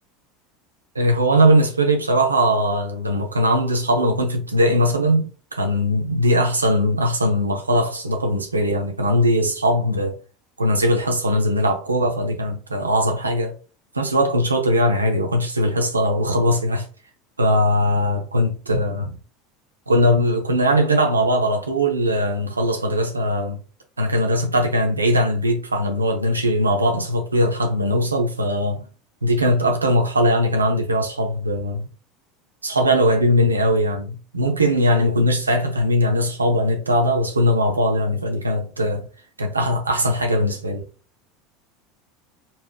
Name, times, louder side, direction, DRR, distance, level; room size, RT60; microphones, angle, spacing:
voice 1, 0.9-10.2 10.6-13.5 13.9-16.9 17.4-19.2 19.9-23.6 24.0-28.8 29.2-31.9 32.6-39.1 39.4-40.8, equal, 90° right, 0.7 m, -20 dB
4.0 x 3.4 x 2.2 m
figure-of-eight pair, 75°, 0 cm